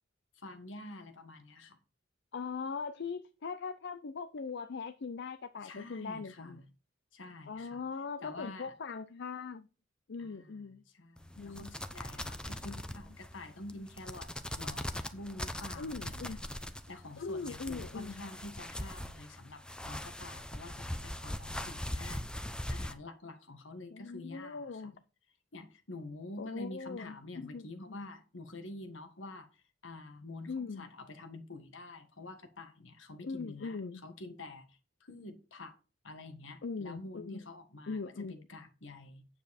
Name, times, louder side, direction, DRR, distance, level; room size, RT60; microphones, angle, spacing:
voice 1, 0.4-1.8 5.6-6.7 7.1-7.8 8.2-8.7 10.2-14.3 14.6-16.4 16.9-22.3 22.7-24.9 25.5-35.7 36.0-38.0 38.3-39.3, left 2 dB, 80° left, 1.6 m, -48 dB
voice 2, 2.3-6.6 7.5-9.7 10.1-10.8 11.4-11.7 12.6-12.8 15.8-16.4 17.2-18.3 23.9-25.0 26.4-28.1 30.5-30.9 33.2-34.0 36.6-37.4 37.9-38.3, left 4 dB, 60° left, 0.5 m, -40 dB
sound 1, 11.2-22.9, left 1 dB, 5° left, 0.7 m, -41 dB
9.3 x 7.4 x 4.2 m
head